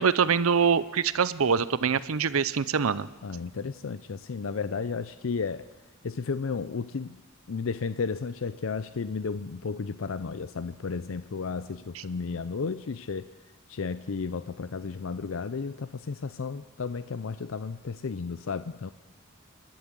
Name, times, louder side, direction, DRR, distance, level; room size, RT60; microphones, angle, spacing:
voice 1, 0.0-3.1, right 6 dB, 85° right, 17 dB, 0.7 m, -24 dB
voice 2, 3.2-5.7 6.0-7.2 7.5-13.3 13.7-18.9, left 5 dB, 70° left, 13 dB, 0.5 m, -33 dB
28.5 x 12.0 x 7.6 m, 1.2 s
head